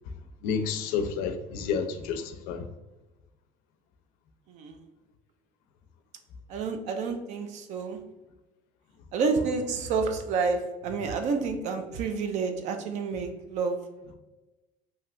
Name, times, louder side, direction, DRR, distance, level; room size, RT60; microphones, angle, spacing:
voice 1, 0.4-2.6, left 6 dB, 85° left, 8 dB, 0.4 m, -30 dB
voice 2, 4.5-4.8 6.5-8.0 9.1-13.8, right 4 dB, 55° right, 6 dB, 0.5 m, -29 dB
3.1 x 2.7 x 2.5 m, 1.1 s
cardioid pair, 175°, 14 cm